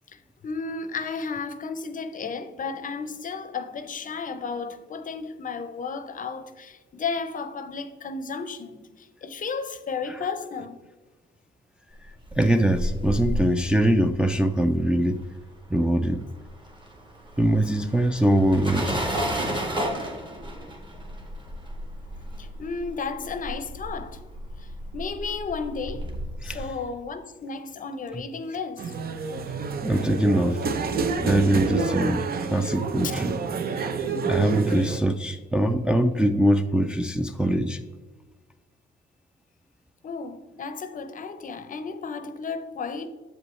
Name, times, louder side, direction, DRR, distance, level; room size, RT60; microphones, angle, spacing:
voice 1, 0.1-10.8 22.3-24.2 24.6-26.1 26.4-28.9 33.0-33.1 40.0-43.1, left 5 dB, 40° left, 0.6 m, -33 dB
sound 1, 12.0-15.7 16.0-26.7, equal, 25° right, 1.4 m, -33 dB
voice 2, 12.4-15.2 15.7-16.2 17.4-19.0 26.4-26.7 29.8-30.6 31.2-32.2 32.5-33.4 34.2-37.8, right 1 dB, 5° right, 0.4 m, -22 dB
sound 2, 28.8-35.0, right 4 dB, 50° right, 0.6 m, -28 dB
7.5 x 5.2 x 3.2 m
cardioid pair, 90°, 20 cm